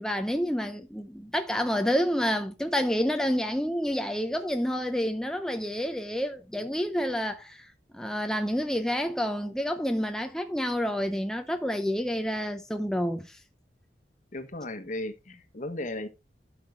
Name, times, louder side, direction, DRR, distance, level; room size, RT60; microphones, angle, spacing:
voice 1, 0.0-7.7 7.9-13.4, equal, 5° left, 0.7 m, -29 dB
voice 2, 14.3-16.1, left 2 dB, 45° left, 1.4 m, -35 dB
12.0 x 5.8 x 3.4 m
head